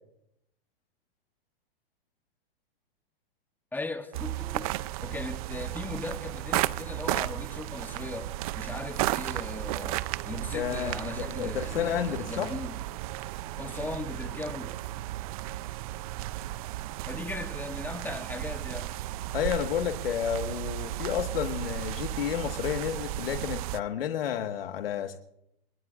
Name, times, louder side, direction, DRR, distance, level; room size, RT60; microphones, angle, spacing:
voice 1, 3.7-4.7 5.0-12.8 13.6-14.8 17.1-18.9, left 2 dB, 5° left, 1.1 m, -38 dB
sound 1, 4.1-23.8, right 15 dB, 40° right, 0.5 m, -34 dB
voice 2, 10.5-12.5 19.3-25.2, left 9 dB, 75° left, 1.7 m, -31 dB
29.5 x 16.5 x 2.5 m
hypercardioid pair, 140°, 30 cm